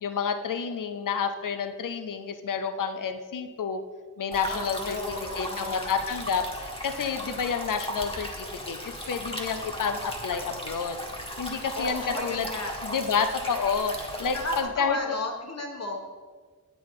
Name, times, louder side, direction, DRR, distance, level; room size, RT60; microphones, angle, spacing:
voice 1, 0.0-3.8 4.2-11.0 11.4-12.5 12.8-15.2, left 6 dB, 85° left, 9 dB, 0.6 m, -30 dB
sound 1, 4.3-14.6, equal, 15° left, 1.4 m, -37 dB
voice 2, 4.5-6.0 11.7-12.7 14.3-16.0, left 2 dB, 55° left, 2 dB, 1.5 m, -33 dB
9.1 x 6.2 x 4.7 m, 1.5 s
wide cardioid pair, 85°, 31 cm